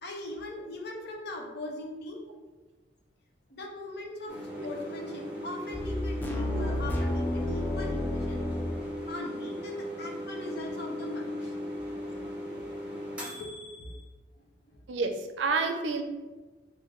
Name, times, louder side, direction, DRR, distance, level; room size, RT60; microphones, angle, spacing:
voice 1, 0.0-2.2 3.5-8.4 9.1-11.5 13.4-13.9, left 1 dB, 60° left, 0 dB, 0.7 m, -40 dB
sound 1, 4.3-14.0, equal, 5° right, 1.0 m, -38 dB
sound 2, 5.7-8.9, left 1 dB, 10° left, 0.4 m, -31 dB
voice 2, 14.9-16.0, right 4 dB, 90° right, 6 dB, 0.4 m, -29 dB
3.1 x 2.5 x 3.5 m, 1.2 s
head